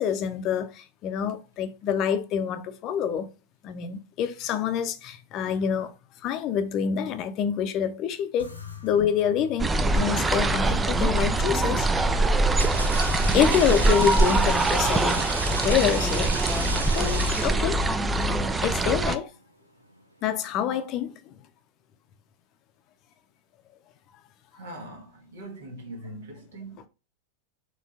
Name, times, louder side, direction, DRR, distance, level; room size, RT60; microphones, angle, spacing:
voice 1, 0.0-3.3 3.6-5.9 6.2-8.5 8.8-11.9 13.3-15.3 15.6-16.3 16.9-17.8 18.2-19.3 20.2-21.3, left 8 dB, 35° left, 0.7 m, -27 dB
sound 1, 8.4-19.0, left 8 dB, 80° left, 1.0 m, -43 dB
sound 2, 9.6-19.2, right 2 dB, 15° right, 0.4 m, -23 dB
sound 3, 12.5-18.0, right 2 dB, 80° right, 0.4 m, -34 dB
voice 2, 24.5-26.9, right 1 dB, 65° right, 1.4 m, -41 dB
4.3 x 3.2 x 3.7 m
figure-of-eight pair, 90°, 0 cm